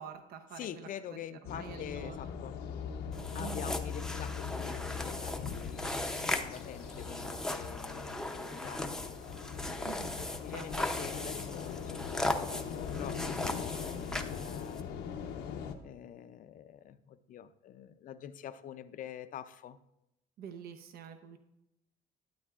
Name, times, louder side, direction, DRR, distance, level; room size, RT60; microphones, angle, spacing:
voice 1, 0.0-1.2 1.5-2.2 3.4-3.7 9.8-10.2 10.5-10.7 20.4-21.4, right 7 dB, 65° right, 7 dB, 0.8 m, -46 dB
voice 2, 0.6-2.6 3.3-8.9 10.4-14.9 15.8-19.8, left 10 dB, 55° left, 12 dB, 0.5 m, -46 dB
sound 1, 1.4-15.7, left 7 dB, 90° left, 0.8 m, -41 dB
sound 2, 3.1-14.8, left 1 dB, 5° left, 0.6 m, -38 dB
12.5 x 8.2 x 2.4 m, 0.85 s
cardioid pair, 110°, 17 cm